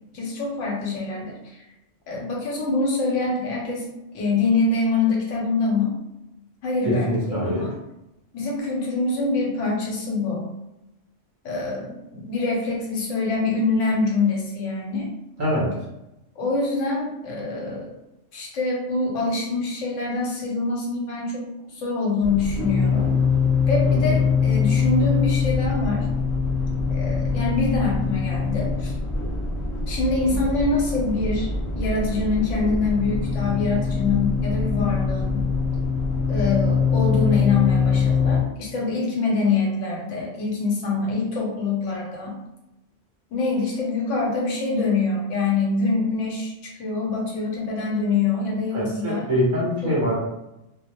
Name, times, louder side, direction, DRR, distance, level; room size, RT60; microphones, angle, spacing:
voice 1, 0.1-1.4 2.1-5.9 6.6-7.7 8.3-10.5 11.4-15.1 16.4-17.9 18.3-23.1 23.7-26.1 26.9-28.9 29.9-31.5 31.7-35.5 36.3-42.4 43.3-49.3 49.8-49.9, left 3 dB, 75° left, -2 dB, 1.0 m, -25 dB
voice 2, 6.9-7.6 15.4-15.7 23.8-24.1 48.7-50.1, equal, 45° right, -6 dB, 0.8 m, -24 dB
sound 1, 22.2-38.4, left 5 dB, 20° left, 0.4 m, -23 dB
2.2 x 2.1 x 2.9 m, 0.92 s
omnidirectional pair, 1.3 m